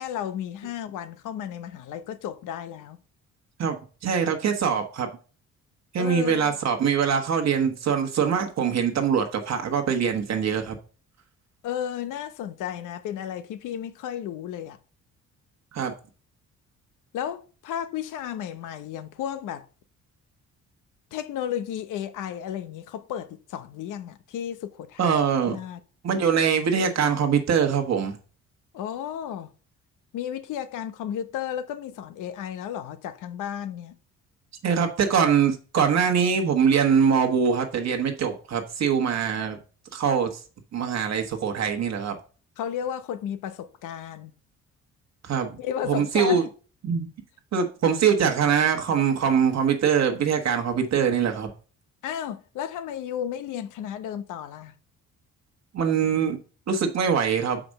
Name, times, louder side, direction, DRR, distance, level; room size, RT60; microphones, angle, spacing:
voice 1, 0.0-3.0 6.0-6.6 11.6-14.8 17.1-19.7 21.1-25.1 25.5-25.8 28.7-29.5 30.1-33.9 42.6-44.3 45.6-46.4 52.0-54.7, left 9 dB, 90° left, 0.9 m, -33 dB
voice 2, 4.0-5.1 5.9-10.7 15.7-15.9 25.0-25.6 26.0-28.2 34.6-39.6 39.9-40.3 40.7-42.2 45.2-45.6 45.8-46.4 46.8-47.1 47.5-51.5 55.7-56.4 56.7-57.6, right 7 dB, 60° right, 1.3 m, -23 dB
5.9 x 5.1 x 6.4 m
cardioid pair, 90°, 30 cm